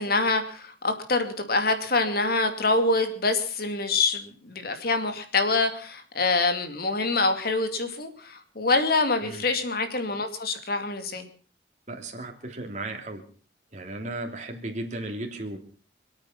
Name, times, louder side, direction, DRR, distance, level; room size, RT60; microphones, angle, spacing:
voice 1, 0.0-11.3, left 3 dB, 55° left, 7 dB, 2.4 m, -25 dB
voice 2, 11.9-13.2 13.7-15.6, right 2 dB, 40° right, 3 dB, 3.1 m, -35 dB
26.5 x 8.8 x 5.9 m, 0.42 s
head